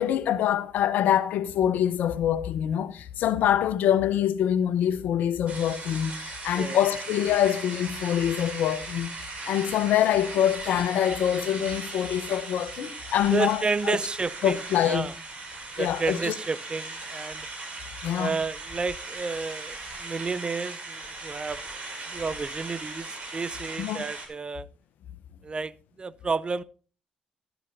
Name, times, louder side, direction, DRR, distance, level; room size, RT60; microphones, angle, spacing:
voice 1, 0.0-9.1 9.5-14.0 14.4-15.1 15.8-16.3 18.0-18.3 23.8-24.0, left 10 dB, 70° left, 0.8 m, -25 dB
sound 1, 5.5-24.3, right 3 dB, 50° right, 5.3 m, -38 dB
voice 2, 13.3-14.6 14.8-15.1 15.8-17.5 18.2-21.6 22.1-24.7 25.4-26.6, right 4 dB, 30° right, 0.6 m, -31 dB
13.0 x 11.0 x 2.7 m
hypercardioid pair, 55°, 3 cm